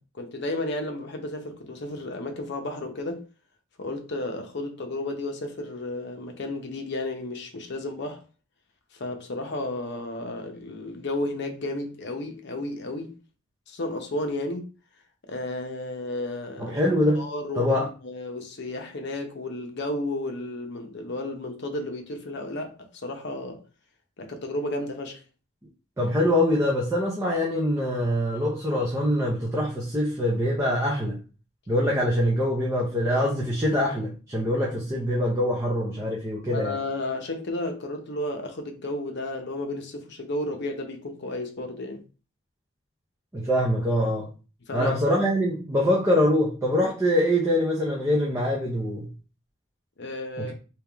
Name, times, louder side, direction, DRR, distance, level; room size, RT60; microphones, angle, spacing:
voice 1, 0.0-3.3 3.8-8.2 8.9-13.2 13.7-14.7 15.2-16.8 17.1-17.8 18.0-23.6 24.2-25.2 36.5-42.0 44.7-45.0 50.0-50.5, left 1 dB, 55° left, 0.8 m, -33 dB
voice 2, 16.6-17.3 17.6-17.9 26.0-31.2 31.7-36.8 43.3-44.3 44.7-49.1 50.4-50.5, left 1 dB, 15° right, 0.7 m, -24 dB
3.5 x 2.9 x 3.4 m
head